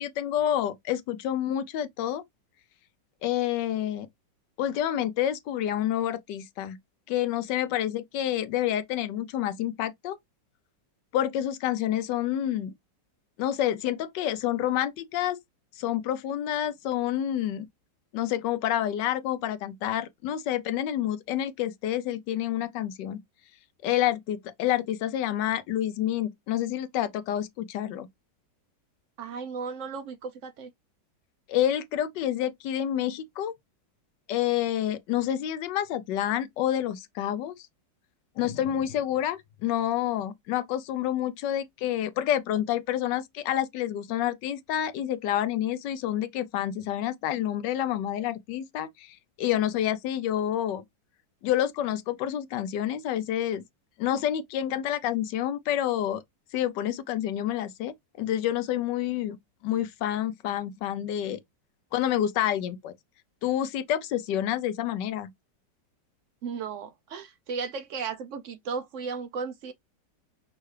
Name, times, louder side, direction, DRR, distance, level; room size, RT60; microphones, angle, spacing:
voice 1, 0.0-2.2 3.2-4.1 4.6-6.8 7.1-10.2 11.1-12.7 13.4-15.4 15.8-17.7 18.1-23.2 23.8-28.1 31.5-33.5 34.3-37.5 38.4-50.8 51.4-53.6 54.0-56.2 56.5-59.4 59.6-61.4 61.9-62.9 63.4-65.3, left 11 dB, 80° left, 1.2 m, -28 dB
voice 2, 29.2-30.7 66.4-69.7, right 5 dB, 80° right, 0.6 m, -35 dB
5.5 x 2.5 x 3.1 m
omnidirectional pair, 1.9 m